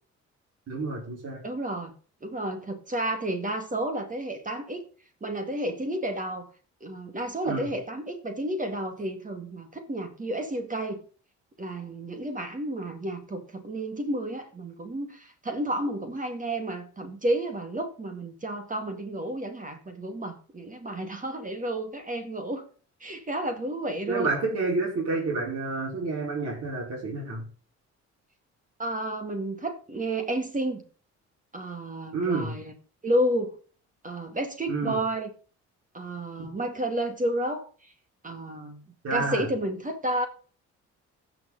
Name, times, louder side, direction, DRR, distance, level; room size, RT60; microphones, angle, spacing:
voice 1, 0.7-1.4 7.4-7.7 24.1-27.4 32.1-32.6 34.7-35.0 36.4-36.5 39.0-39.5, right 3 dB, 50° right, -5 dB, 4.8 m, -29 dB
voice 2, 1.4-1.9 2.2-4.8 5.2-6.4 6.8-11.0 11.6-22.6 23.0-24.3 28.8-30.8 31.5-32.7 33.0-33.6 34.0-35.3 35.9-37.7 38.2-38.8 39.1-40.3, right 1 dB, 25° right, 6 dB, 2.1 m, -31 dB
15.5 x 6.5 x 4.0 m, 0.40 s
cardioid pair, 90°, 30 cm